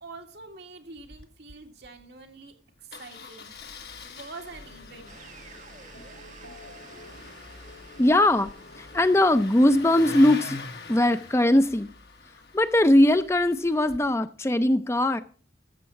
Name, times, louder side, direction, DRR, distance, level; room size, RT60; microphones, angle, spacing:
voice 1, 0.0-3.5 4.0-5.2, right 3 dB, 60° right, 4 dB, 2.1 m, -45 dB
Engine starting, 1.0-1.2 1.5-1.6 1.8-2.0 2.9-14.0, left 4 dB, 60° left, 1.7 m, -43 dB
sound 1, 4.5-10.1, left 2 dB, 80° left, 1.9 m, -51 dB
sound 2, 5.1-10.0, right 4 dB, 40° right, 1.6 m, -51 dB
voice 2, 8.0-8.5 8.8-10.6 10.9-11.9 12.5-15.2, left 1 dB, 15° left, 11 dB, 0.5 m, -20 dB
14.0 x 7.4 x 5.7 m, 0.41 s
head